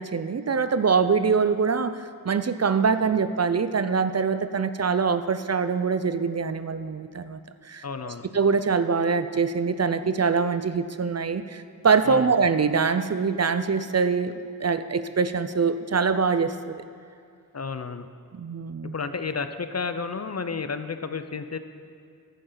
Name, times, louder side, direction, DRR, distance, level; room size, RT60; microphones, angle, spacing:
voice 1, 0.0-7.4 7.7-14.3 14.6-16.8 18.3-18.9, right 5 dB, 45° right, 11 dB, 0.5 m, -24 dB
voice 2, 7.8-8.3 12.1-12.3 17.5-18.1 18.9-21.6, left 5 dB, 45° left, 10 dB, 0.6 m, -31 dB
11.0 x 9.2 x 3.9 m, 2.3 s
wide cardioid pair, 45°, 37 cm